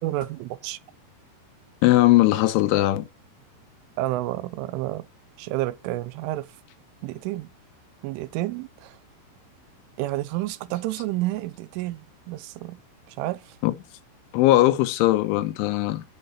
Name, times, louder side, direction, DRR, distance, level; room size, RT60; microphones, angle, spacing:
voice 1, 0.0-0.8 4.0-5.1 5.4-6.6 7.0-7.5 8.0-9.0 10.0-12.8 13.1-13.6, right 16 dB, 90° right, 3.2 m, -30 dB
voice 2, 1.8-3.1 13.6-13.7 14.3-16.0, left 16 dB, 80° left, 3.2 m, -19 dB
7.5 x 6.6 x 5.7 m
omnidirectional pair, 5.6 m